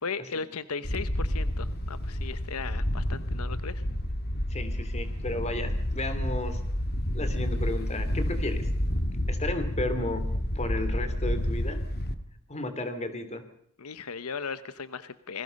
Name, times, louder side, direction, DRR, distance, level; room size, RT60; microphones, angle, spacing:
voice 1, 0.0-3.8 13.8-15.4, left 5 dB, 80° left, 13 dB, 0.9 m, -37 dB
Wind, 0.8-12.1, equal, 50° left, 1.7 m, -30 dB
voice 2, 4.5-6.6 7.1-8.7 9.3-11.8 12.5-13.5, left 2 dB, 30° left, 10 dB, 2.9 m, -33 dB
27.5 x 21.0 x 5.4 m, 0.67 s
head